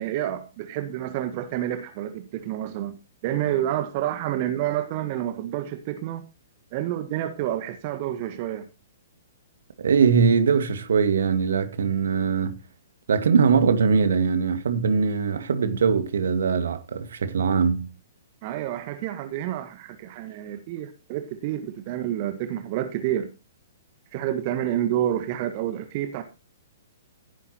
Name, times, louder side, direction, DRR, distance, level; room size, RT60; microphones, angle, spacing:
voice 1, 0.0-3.0 3.2-6.3 6.7-8.7 18.4-23.3 24.1-26.2, right 12 dB, 40° right, 1.6 m, -29 dB
voice 2, 9.8-12.6 13.1-17.9, right 5 dB, 65° right, 2.0 m, -21 dB
15.5 x 10.0 x 3.0 m
figure-of-eight pair, 115°, 0 cm